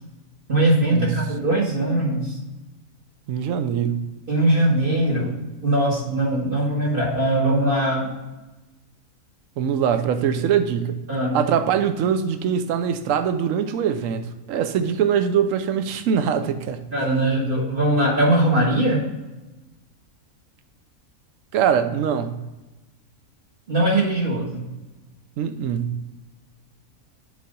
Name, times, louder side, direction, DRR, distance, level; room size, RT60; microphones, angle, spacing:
voice 1, 0.5-2.4 4.3-5.3 5.6-8.1 11.1-11.4 16.9-19.0 23.7-24.6, right 1 dB, 35° right, 2.0 m, -21 dB
voice 2, 3.3-4.0 9.6-11.0 11.3-16.8 21.5-22.3 25.4-25.9, right 8 dB, 65° right, 1.0 m, -22 dB
7.3 x 4.2 x 5.2 m
omnidirectional pair, 1.6 m